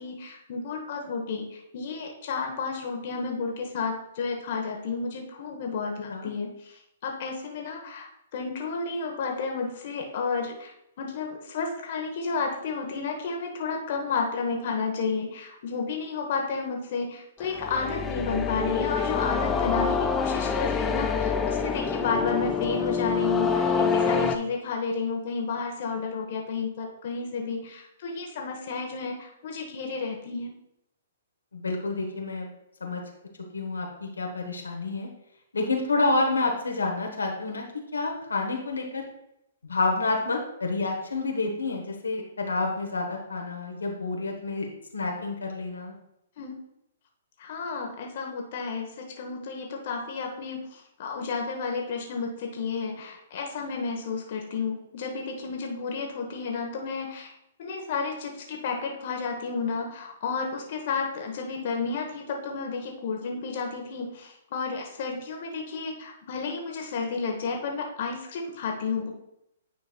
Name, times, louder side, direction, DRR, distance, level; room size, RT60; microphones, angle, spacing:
voice 1, 0.0-10.7 11.0-30.5 46.4-46.6 47.4-57.3 57.6-69.1, left 4 dB, 50° left, 1 dB, 1.1 m, -32 dB
sound 1, 17.4-24.4, left 5 dB, 15° left, 0.5 m, -26 dB
voice 2, 31.5-32.5 32.8-33.0 33.5-35.1 35.5-37.6 37.9-39.0 39.7-44.7 44.9-45.9, left 3 dB, 80° left, 1 dB, 1.1 m, -28 dB
9.6 x 4.6 x 2.4 m, 0.82 s
figure-of-eight pair, 125°, 0 cm